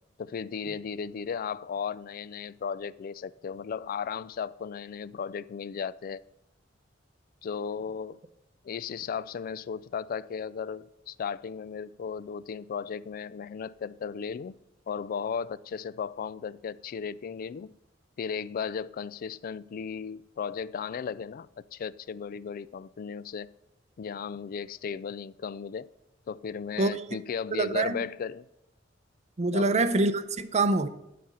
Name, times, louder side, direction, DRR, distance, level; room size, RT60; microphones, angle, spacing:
voice 1, 0.2-6.2 7.4-8.2 8.6-14.5 14.9-17.7 18.2-23.5 24.0-25.9 26.3-28.5 29.5-29.9, left 6 dB, 50° left, 0.3 m, -35 dB
voice 2, 27.5-28.0 29.4-30.9, right 2 dB, 35° right, 0.6 m, -25 dB
11.5 x 4.3 x 6.4 m
head